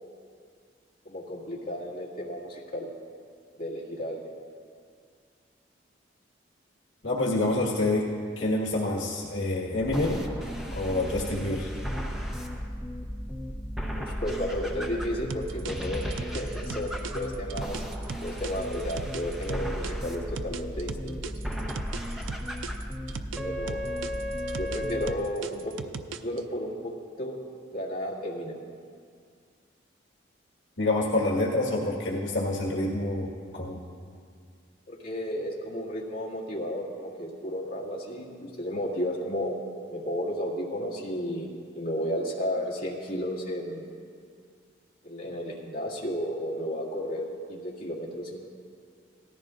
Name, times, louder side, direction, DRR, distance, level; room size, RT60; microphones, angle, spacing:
voice 1, 1.1-2.9 3.6-4.2 13.9-17.8 18.2-21.3 23.3-23.8 24.6-25.8 26.2-26.9 27.2-27.4 27.7-28.6 34.9-39.6 39.9-41.5 41.7-43.8 45.0-48.4, equal, 50° left, -5 dB, 1.9 m, -33 dB
voice 2, 7.0-8.1 8.4-10.3 10.7-11.7 30.8-33.8, left 2 dB, 80° left, -4 dB, 1.6 m, -27 dB
sound 1, 9.8-25.1, equal, 5° right, 0.8 m, -34 dB
sound 2, 15.3-19.9 20.4-23.4 23.7-26.4, right 5 dB, 85° right, 0.5 m, -38 dB
17.5 x 14.0 x 2.5 m, 2.2 s
head